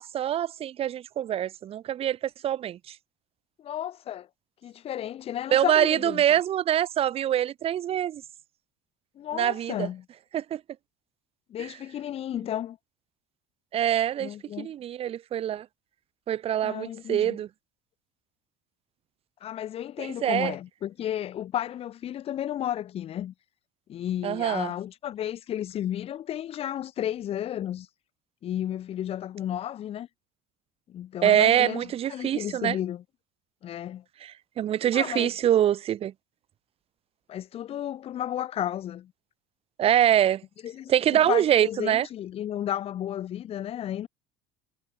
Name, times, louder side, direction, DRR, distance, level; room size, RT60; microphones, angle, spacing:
voice 1, 0.0-2.2 2.4-3.0 5.5-8.2 9.3-9.9 10.3-10.6 11.6-11.7 13.7-15.7 16.3-17.5 20.0-20.5 24.2-24.7 31.2-32.8 34.2-36.1 39.8-40.4 40.9-42.1, right 11 dB, 40° right, 4.1 m, -24 dB
voice 2, 3.6-4.3 4.6-6.2 9.1-10.0 11.5-12.8 14.2-14.7 16.6-17.4 19.4-23.3 23.9-27.9 28.4-30.1 30.9-33.0 33.6-34.0 34.9-35.3 37.3-39.1 40.6-44.1, left 11 dB, 40° left, 3.1 m, -33 dB
cardioid pair, 145°, 16 cm